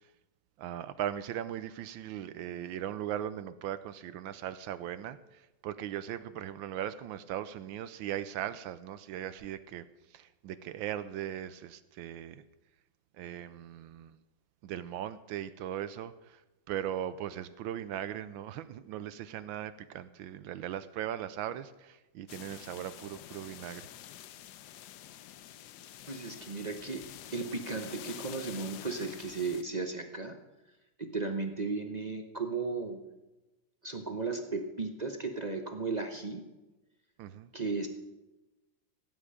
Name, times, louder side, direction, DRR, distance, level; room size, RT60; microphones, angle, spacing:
voice 1, 0.6-9.8 10.1-12.4 13.2-14.2 14.6-16.4 16.7-23.9 37.2-37.5, right 11 dB, 85° right, 13 dB, 1.4 m, -39 dB
sound 1, 22.3-29.6, left 11 dB, 70° left, 1.1 m, -48 dB
voice 2, 26.1-30.4 31.0-33.0 33.8-36.4 37.5-37.9, right 4 dB, 35° right, 5 dB, 0.7 m, -35 dB
17.0 x 9.5 x 5.0 m, 1.0 s
omnidirectional pair, 2.1 m